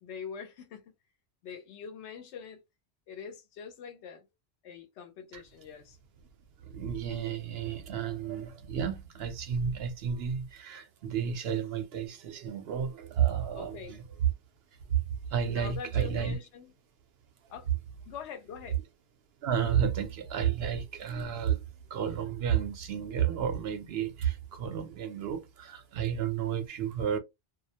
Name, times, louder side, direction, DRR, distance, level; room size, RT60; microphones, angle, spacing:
voice 1, 0.0-0.9 1.4-2.6 3.1-4.3 4.6-6.0 13.5-14.0 15.5-16.7 17.5-17.7 18.1-18.8, left 6 dB, 80° left, 0.9 m, -44 dB
voice 2, 6.7-14.0 15.3-16.4 19.4-21.6 21.9-27.2, right 8 dB, 70° right, 0.8 m, -31 dB
2.3 x 2.0 x 2.7 m
omnidirectional pair, 1.2 m